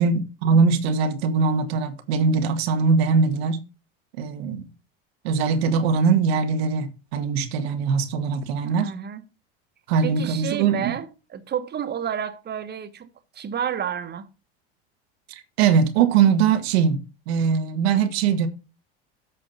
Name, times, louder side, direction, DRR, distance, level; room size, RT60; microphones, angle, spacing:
voice 1, 0.0-3.6 4.2-4.6 5.2-8.9 9.9-10.9 15.3-18.5, right 5 dB, 80° right, 1.5 m, -21 dB
voice 2, 8.6-9.2 10.0-13.1 13.3-14.3, right 8 dB, 35° right, 1.3 m, -30 dB
8.4 x 5.7 x 5.5 m
supercardioid pair, 100°, 31 cm